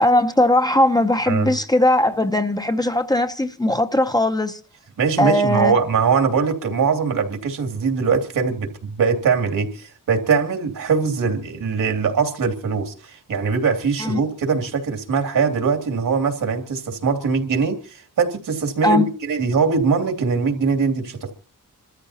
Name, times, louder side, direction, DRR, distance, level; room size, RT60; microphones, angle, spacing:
voice 1, 0.0-4.6 5.2-5.7 14.0-14.2 18.8-19.1, left 1 dB, 10° left, 0.7 m, -19 dB
voice 2, 5.0-21.3, right 5 dB, 80° right, 2.7 m, -21 dB
27.5 x 13.5 x 2.9 m
wide cardioid pair, 145°, 32 cm